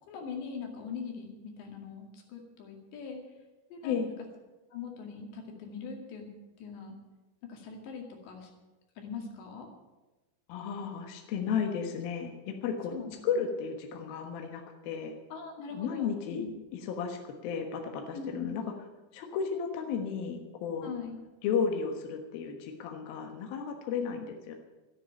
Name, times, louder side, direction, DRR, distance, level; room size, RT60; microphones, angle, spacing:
voice 1, 0.0-3.2 3.7-4.0 4.7-6.3 6.6-7.0 7.4-8.5 9.0-9.7 12.9-13.5 15.3-16.5 18.1-18.5 20.8-21.2, left 5 dB, 80° left, 1 dB, 4.6 m, -42 dB
voice 2, 10.5-12.9 13.2-15.1 15.7-16.4 16.9-18.6 19.1-20.9 21.4-24.6, left 6 dB, 65° left, 3 dB, 2.9 m, -33 dB
13.5 x 10.0 x 9.0 m, 1.1 s
omnidirectional pair, 5.0 m